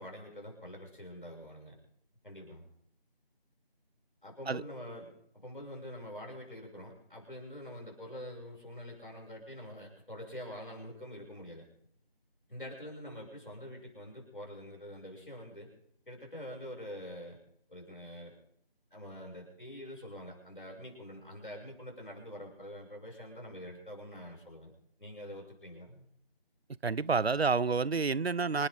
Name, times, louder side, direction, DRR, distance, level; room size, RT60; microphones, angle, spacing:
voice 1, 0.0-1.8 2.2-2.7 4.2-11.6 12.5-15.7 16.1-17.4 17.7-18.4 18.9-24.7 25.0-26.0, equal, 55° left, 7.2 m, -45 dB
voice 2, 26.8-28.7, right 4 dB, 85° right, 0.6 m, -29 dB
27.0 x 10.5 x 3.9 m
figure-of-eight pair, 175°, 30 cm